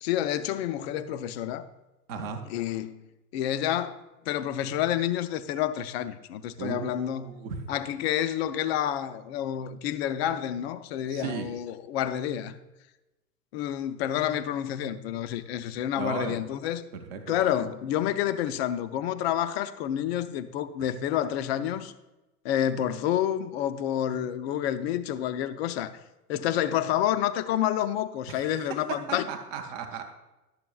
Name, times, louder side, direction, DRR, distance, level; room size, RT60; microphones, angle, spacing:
voice 1, 0.0-1.7 2.5-3.0 3.3-7.4 7.7-12.5 13.5-16.8 17.3-21.9 22.4-26.0 26.3-29.3, left 11 dB, 45° left, 0.4 m, -29 dB
voice 2, 2.1-2.4 6.6-7.6 11.1-11.5 16.0-16.3 16.9-17.2 28.3-28.5 29.1-30.0, right 6 dB, 20° right, 0.3 m, -35 dB
11.5 x 6.8 x 2.3 m
hypercardioid pair, 110°, 48 cm